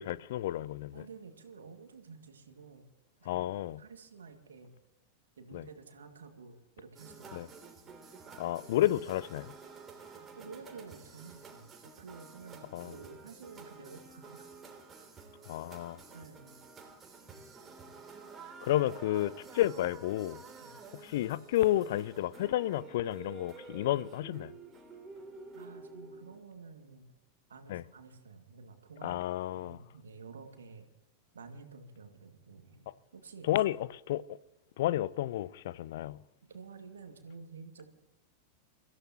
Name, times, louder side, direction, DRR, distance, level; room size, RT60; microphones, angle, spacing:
voice 1, 0.0-1.0 3.3-3.8 5.5-5.7 7.3-7.5 8.4-9.5 12.7-12.9 15.5-16.0 18.6-20.4 21.0-24.5 27.7-27.8 29.0-29.8 33.5-33.8 34.1-34.2 34.8-36.2, left 14 dB, 55° left, 0.5 m, -31 dB
voice 2, 0.9-2.8 3.2-4.7 5.4-7.3 10.3-14.5 16.1-16.6 20.6-20.8 25.5-27.1 27.5-30.9 31.3-33.6 36.4-37.9, right 5 dB, 70° right, 2.3 m, -51 dB
sound 1, 6.9-26.4, right 4 dB, 20° right, 3.2 m, -51 dB
29.5 x 15.5 x 3.0 m
figure-of-eight pair, 90°, 0 cm